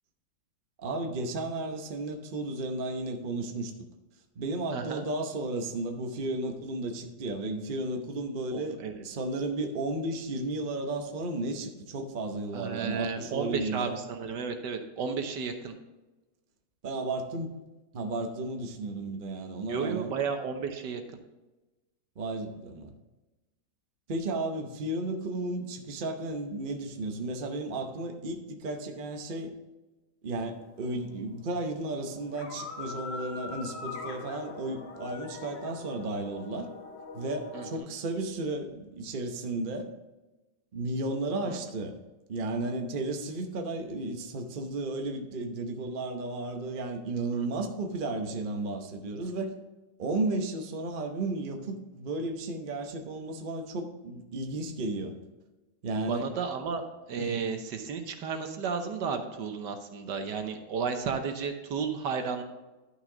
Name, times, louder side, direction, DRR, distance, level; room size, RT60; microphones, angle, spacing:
voice 1, 0.8-3.7 4.4-14.0 16.8-17.6 17.9-20.1 22.2-22.9 24.1-29.5 30.2-36.7 37.1-39.9 40.7-42.0 42.3-49.5 50.0-55.1 55.8-56.3 57.2-57.4, right 2 dB, 40° right, 3 dB, 0.8 m, -33 dB
voice 2, 4.7-5.1 8.5-9.0 12.5-15.7 19.7-21.0 37.5-37.9 41.5-41.6 47.3-47.4 56.1-56.8 57.1-62.4, right 6 dB, 70° right, 6 dB, 1.5 m, -33 dB
sound 1, 30.4-31.3 31.6-37.8, left 3 dB, 40° left, 1.1 m, -43 dB
11.5 x 6.1 x 3.9 m, 1.1 s
omnidirectional pair, 2.0 m